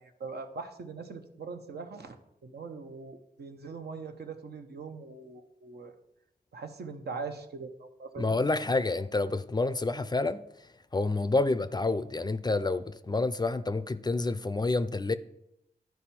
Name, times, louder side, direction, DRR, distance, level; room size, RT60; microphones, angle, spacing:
voice 1, 0.0-5.9 6.5-8.4, right 4 dB, 80° right, 0.8 m, -42 dB
voice 2, 8.2-10.5 10.9-15.1, left 3 dB, 25° left, 0.4 m, -28 dB
12.0 x 4.6 x 4.3 m
cardioid pair, 65°, 17 cm